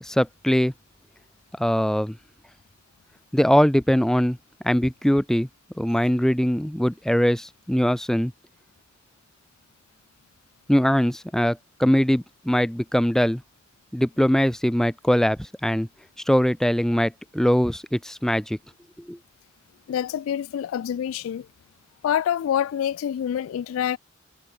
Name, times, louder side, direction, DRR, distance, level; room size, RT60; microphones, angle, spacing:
voice 1, 0.0-0.7 1.6-2.2 3.3-4.4 4.6-5.5 5.8-8.3 10.7-13.4 13.9-15.9 16.3-18.6 19.1-19.2, equal, ahead, 0.3 m, -21 dB
voice 2, 19.9-21.5 22.0-24.0, left 9 dB, 90° left, 0.3 m, -26 dB
head